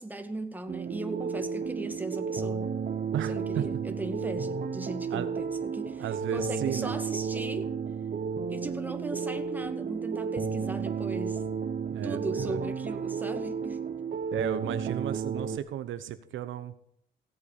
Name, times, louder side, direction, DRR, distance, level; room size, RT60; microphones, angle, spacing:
voice 1, 0.0-2.7 3.3-7.7 8.5-11.4 12.0-13.9, right 2 dB, 10° right, 6 dB, 2.0 m, -38 dB
sound 1, 0.7-15.6, right 6 dB, 45° right, 1.0 m, -32 dB
voice 2, 3.1-3.7 5.1-5.3 6.0-6.9 11.9-12.6 14.3-16.7, right 11 dB, 75° right, 11 dB, 1.0 m, -34 dB
16.5 x 8.2 x 6.6 m, 0.68 s
cardioid pair, 90°, 20 cm